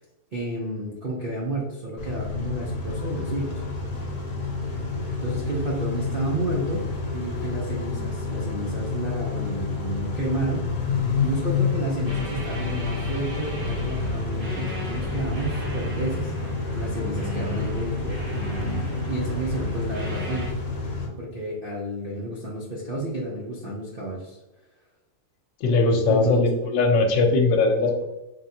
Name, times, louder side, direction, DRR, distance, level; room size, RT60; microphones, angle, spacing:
voice 1, 0.3-3.6 4.7-4.8 5.2-6.8 7.1-16.3 16.7-20.5 21.2-24.4 26.1-26.4, right 2 dB, 65° right, -4 dB, 0.5 m, -31 dB
Car / Idling / Accelerating revving vroom, 2.0-21.1, left 4 dB, 55° left, 1.1 m, -29 dB
sound 1, 12.1-20.5, right 2 dB, 35° right, 1.1 m, -35 dB
voice 2, 25.6-28.0, left 3 dB, 85° left, 4 dB, 1.4 m, -20 dB
3.8 x 3.4 x 2.8 m, 1.0 s
omnidirectional pair, 1.9 m